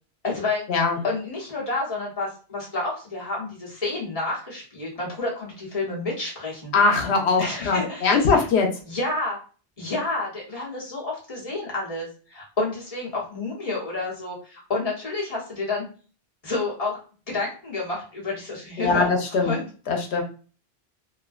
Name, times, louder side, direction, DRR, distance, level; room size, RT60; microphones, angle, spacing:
voice 1, 0.2-0.6 1.0-6.7 7.4-8.5 8.9-9.4 9.8-15.9 16.4-17.0 17.3-19.1 19.4-19.7, left 2 dB, 35° left, -4 dB, 1.0 m, -29 dB
voice 2, 6.7-8.7 18.8-19.5 19.9-20.2, left 4 dB, 90° left, 2 dB, 0.9 m, -21 dB
2.4 x 2.1 x 2.3 m, 0.38 s
omnidirectional pair, 1.1 m